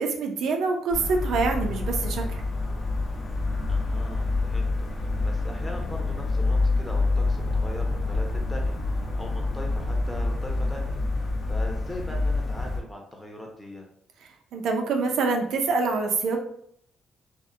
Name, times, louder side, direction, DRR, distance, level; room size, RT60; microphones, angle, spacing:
voice 1, 0.0-2.4 14.5-16.4, right 4 dB, 75° right, 3 dB, 0.4 m, -25 dB
sound 1, 0.9-12.8, left 2 dB, 50° left, 0.7 m, -27 dB
voice 2, 3.7-4.7 5.0-13.9, left 1 dB, 10° left, 1 dB, 0.6 m, -40 dB
2.7 x 2.0 x 2.3 m, 0.67 s
cardioid pair, 90°, 0 cm